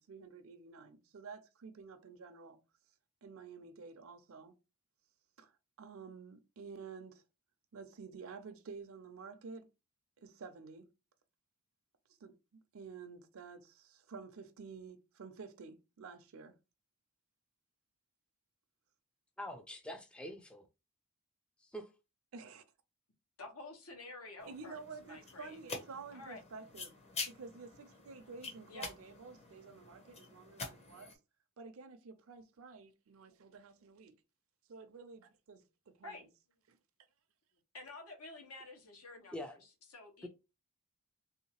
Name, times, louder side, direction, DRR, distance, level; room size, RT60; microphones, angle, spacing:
voice 1, 0.0-2.6 3.2-4.5 5.4-5.5 5.8-7.2 7.7-9.7 10.2-10.9 12.2-16.6 22.3-22.6 24.4-27.0 27.3-31.2 31.6-34.1 34.7-36.3 36.7-36.8, right 4 dB, 70° right, 0.5 m, -51 dB
voice 2, 19.4-20.6 21.6-21.9 39.3-39.6, equal, 5° left, 0.3 m, -44 dB
voice 3, 23.4-25.6 26.1-26.4 28.7-28.9 33.2-33.3 36.0-36.2 37.7-39.6 39.9-40.3, left 2 dB, 85° left, 1.3 m, -50 dB
sound 1, 24.4-31.1, left 3 dB, 30° left, 0.7 m, -47 dB
3.4 x 2.7 x 2.9 m
head